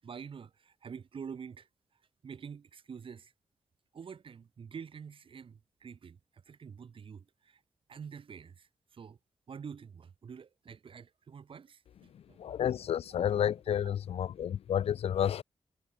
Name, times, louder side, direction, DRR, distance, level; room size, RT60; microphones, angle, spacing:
voice 1, 0.0-3.3 3.9-7.6 7.9-9.2 9.5-12.4 13.7-13.9, right 6 dB, 60° right, 6.3 m, -47 dB
voice 2, 12.4-15.4, left 9 dB, 80° left, 0.4 m, -30 dB
wide cardioid pair, 170°, 10 cm